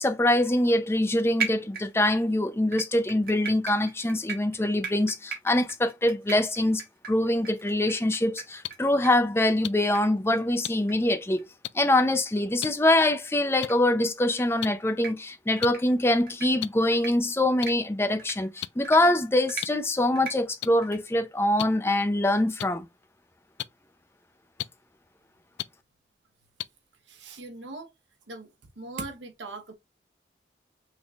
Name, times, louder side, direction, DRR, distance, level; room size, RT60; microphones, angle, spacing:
voice 1, 0.0-6.8 7.1-11.4 11.7-22.9, left 1 dB, 15° left, 0.5 m, -24 dB
sound 1, 1.4-2.2 2.7-8.8 9.0-9.1 9.4-9.5 9.9-10.0 10.3-10.4 10.9-11.0 11.3-11.4 11.9-12.0 13.0-13.1 13.5-13.7 14.2-14.4 14.9-15.1 15.6-15.8 16.3-16.5 16.9-17.1 17.6-17.7 18.2-18.3 18.8-19.0 19.5-19.7 20.2-20.3 20.8-21.0, right 6 dB, 50° right, 1.5 m, -36 dB
sound 2, 8.6-8.7 9.6-9.7 10.6-10.7 11.6-11.7 12.6-12.7 13.6-13.7 14.6-14.7 15.6-15.7 16.6-16.7 17.6-17.7 18.6-18.7 19.6-19.7 20.6-20.7 21.6-21.7 22.6-22.7 23.6-23.7 24.6-24.7 25.6-25.7 26.6-26.7, left 13 dB, 75° left, 0.3 m, -31 dB
voice 2, 27.1-27.9 28.3-28.5 28.8-29.7, right 3 dB, 90° right, 1.0 m, -39 dB
6.1 x 3.5 x 2.4 m
head